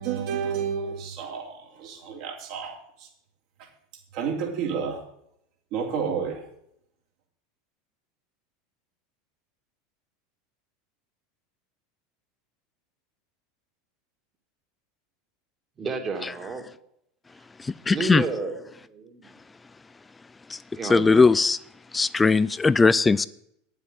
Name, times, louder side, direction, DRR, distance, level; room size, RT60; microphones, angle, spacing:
voice 1, 0.0-3.1 4.1-5.0 5.7-6.4, right 6 dB, 55° right, 3.2 m, -30 dB
voice 2, 15.8-16.6 17.9-18.6 18.9-19.3 20.8-21.2, right 4 dB, 25° right, 2.4 m, -31 dB
voice 3, 17.6-18.2 20.5-21.6 21.9-23.3, left 4 dB, 15° left, 0.4 m, -20 dB
10.5 x 7.3 x 7.8 m
figure-of-eight pair, 80°, 0 cm